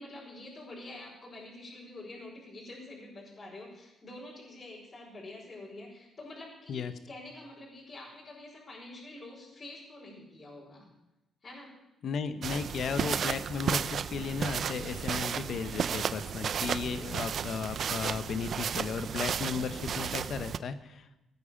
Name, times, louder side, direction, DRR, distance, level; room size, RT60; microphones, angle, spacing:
voice 1, 0.0-10.9 11.4-11.7, left 2 dB, 35° left, -4 dB, 5.1 m, -47 dB
voice 2, 12.0-21.0, left 6 dB, 60° left, 10 dB, 1.2 m, -35 dB
sound 1, 12.4-20.6, right 7 dB, 55° right, 0.5 m, -33 dB
16.5 x 9.5 x 7.2 m, 0.94 s
cardioid pair, 90°, 0 cm